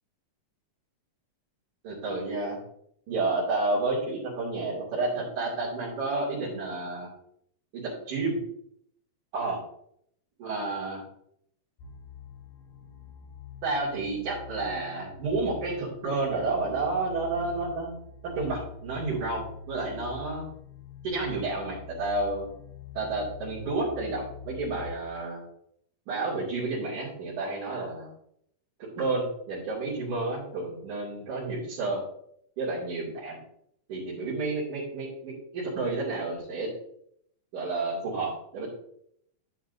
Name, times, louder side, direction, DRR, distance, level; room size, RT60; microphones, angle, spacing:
voice 1, 1.8-2.6 3.1-7.1 7.7-8.4 9.3-9.6 10.4-11.0 13.6-17.9 18.2-20.5 21.0-22.5 22.9-25.4 26.1-28.1 28.8-32.0 32.6-33.4 33.9-36.7 37.5-38.7, right 3 dB, 60° right, -8 dB, 3.8 m, -30 dB
sound 1, 11.8-24.9, left 7 dB, 85° left, 2.9 m, -45 dB
10.0 x 7.9 x 2.6 m, 0.71 s
omnidirectional pair, 4.0 m